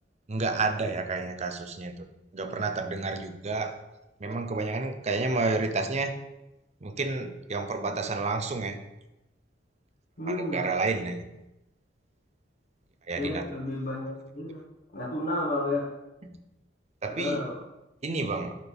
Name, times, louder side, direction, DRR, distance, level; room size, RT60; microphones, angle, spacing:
voice 1, 0.3-2.1 2.3-3.8 4.2-6.2 6.8-8.8 10.3-11.3 13.1-13.4 16.2-16.3 17.0-17.4 18.0-18.5, right 3 dB, 35° right, 6 dB, 0.7 m, -30 dB
voice 2, 10.2-10.6 13.1-14.6 14.9-15.9 17.1-17.6, left 2 dB, 50° left, -6 dB, 1.4 m, -31 dB
11.5 x 4.1 x 3.5 m, 0.95 s
head